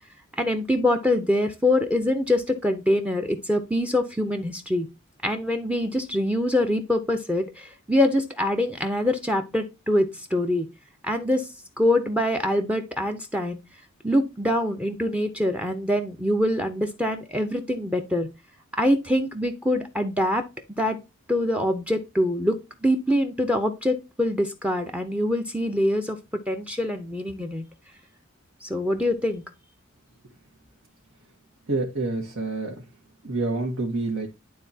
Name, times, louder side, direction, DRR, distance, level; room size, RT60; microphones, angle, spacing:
voice 1, 0.4-4.9 5.2-10.7 11.0-11.5 11.8-13.6 14.0-18.3 18.7-20.4 20.8-21.0 21.3-27.6 28.6-29.4, left 1 dB, 5° right, 0.7 m, -24 dB
voice 2, 31.7-32.7 33.3-34.3, right 2 dB, 70° right, 1.7 m, -27 dB
11.5 x 3.8 x 2.8 m
head